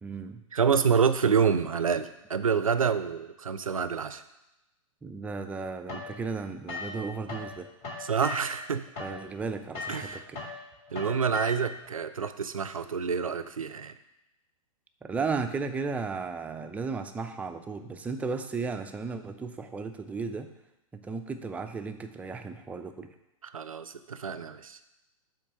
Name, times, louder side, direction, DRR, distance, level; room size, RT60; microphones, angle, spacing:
voice 1, 0.0-0.4 5.0-7.7 9.0-10.4 15.0-20.5 20.9-23.1, right 4 dB, 10° right, 7 dB, 0.4 m, -35 dB
voice 2, 0.5-4.2 8.0-8.8 9.9-10.3 10.9-13.9 23.4-24.8, right 6 dB, 80° right, 11 dB, 0.5 m, -27 dB
sound 1, 5.9-7.5 7.8-11.9, left 3 dB, 30° left, 1.5 m, -39 dB
8.5 x 3.1 x 5.8 m, 0.92 s
figure-of-eight pair, 105°, 18 cm